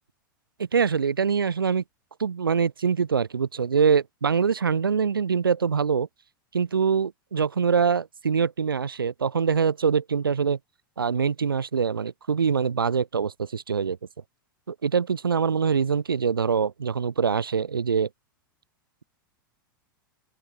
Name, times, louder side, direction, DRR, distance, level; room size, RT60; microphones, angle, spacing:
voice 1, 0.6-1.8 2.2-6.1 6.5-10.6 11.0-14.0 14.7-18.1, right 6 dB, 85° right, 2.1 m, -24 dB
open air
hypercardioid pair, 95°, 11 cm